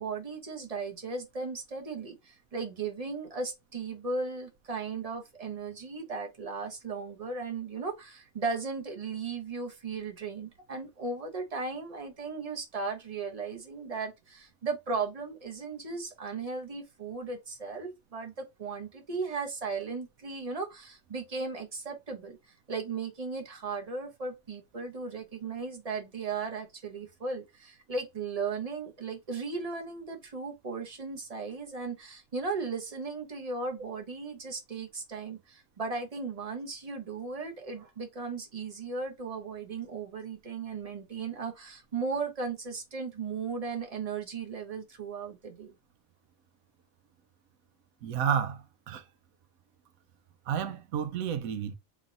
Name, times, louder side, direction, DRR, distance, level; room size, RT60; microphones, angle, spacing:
voice 1, 0.0-22.4 22.7-45.7, right 4 dB, 35° right, 0.8 m, -36 dB
voice 2, 48.0-49.0 50.5-51.8, right 8 dB, 85° right, 1.1 m, -31 dB
3.1 x 2.9 x 3.7 m
omnidirectional pair, 1.4 m